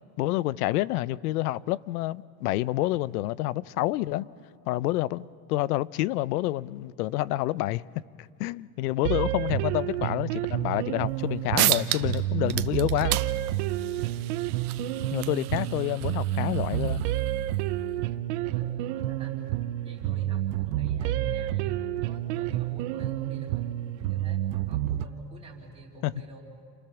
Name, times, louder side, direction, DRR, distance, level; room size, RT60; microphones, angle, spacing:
voice 1, 0.2-4.3 4.7-7.8 8.2-13.2 15.1-17.0 26.0-26.1, left 16 dB, 80° left, 0.8 m, -28 dB
sound 1, 9.0-25.0, right 13 dB, 50° right, 0.8 m, -29 dB
voice 2, 10.9-11.3 18.4-19.4 19.8-23.6 24.0-26.4, right 2 dB, 15° right, 3.6 m, -45 dB
sound 2, 11.2-11.3 11.6-12.2 12.5-17.6, right 16 dB, 75° right, 1.1 m, -32 dB
29.5 x 28.5 x 7.1 m
supercardioid pair, 170°, 45 cm